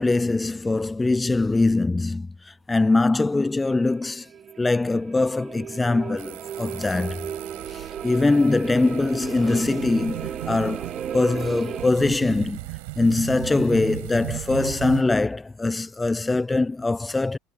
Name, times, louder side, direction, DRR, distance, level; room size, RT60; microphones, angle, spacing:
voice 1, 0.0-2.3 2.7-4.2 4.6-7.3 7.7-10.9 11.1-12.6 13.0-17.4, left 3 dB, 15° left, 0.4 m, -22 dB
sound 1, 3.8-11.9, right 8 dB, 40° right, 1.7 m, -35 dB
sound 2, 6.2-15.0, right 26 dB, 65° right, 4.3 m, -37 dB
figure-of-eight pair, 65°, 0 cm